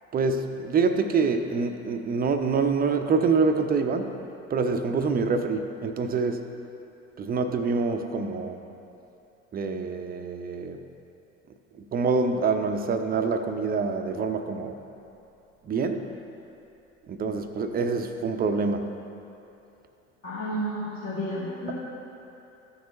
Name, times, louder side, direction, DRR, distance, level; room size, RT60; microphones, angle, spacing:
voice 1, 0.1-4.2 4.5-6.5 7.2-8.6 9.5-10.8 11.8-14.8 15.6-16.1 17.1-18.9, right 4 dB, 25° right, 7 dB, 0.7 m, -26 dB
voice 2, 20.2-21.7, equal, 75° left, -9 dB, 2.1 m, -31 dB
14.5 x 6.2 x 3.0 m, 2.9 s
figure-of-eight pair, 65°, 38 cm